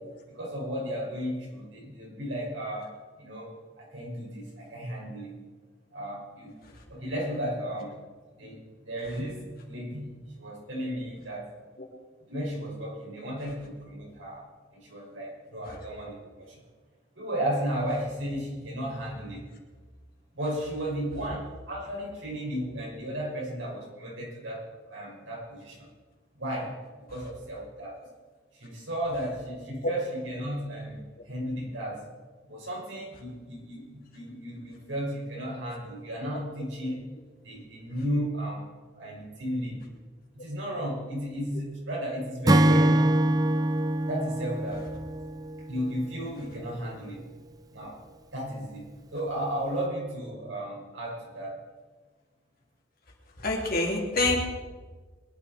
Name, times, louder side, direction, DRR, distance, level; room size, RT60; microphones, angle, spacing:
voice 1, 0.3-5.4 5.9-6.6 6.9-8.1 8.4-11.5 12.3-16.6 17.2-19.4 20.3-25.9 26.3-28.0 28.5-31.0 31.3-32.0 32.5-37.1 37.4-38.7 38.9-39.8 40.3-43.1 44.1-44.9 45.7-47.3 47.7-48.0 48.3-51.6, equal, 90° right, -3 dB, 5.9 m, -34 dB
Acoustic guitar / Strum, 42.5-45.9, right 1 dB, 20° right, 0.5 m, -24 dB
voice 2, 53.4-54.4, left 2 dB, 50° left, -1 dB, 3.1 m, -26 dB
22.0 x 11.0 x 4.4 m, 1.4 s
head